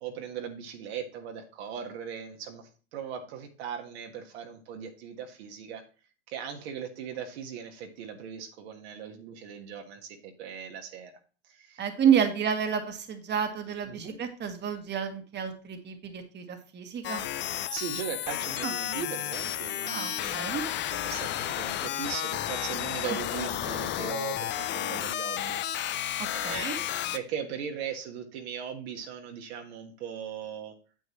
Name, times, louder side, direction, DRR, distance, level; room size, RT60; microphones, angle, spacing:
voice 1, 0.0-5.8 6.3-11.1 11.5-12.2 13.9-14.2 17.5-20.6 20.9-26.9 27.1-30.7, right 8 dB, 65° right, 3 dB, 1.6 m, -39 dB
voice 2, 11.8-17.3 18.6-18.7 19.8-20.7 26.4-26.8, right 8 dB, 30° right, 6 dB, 1.6 m, -29 dB
sound 1, 17.0-27.2, left 12 dB, 35° left, 0.6 m, -32 dB
9.1 x 7.9 x 3.1 m, 0.38 s
hypercardioid pair, 80°, 33 cm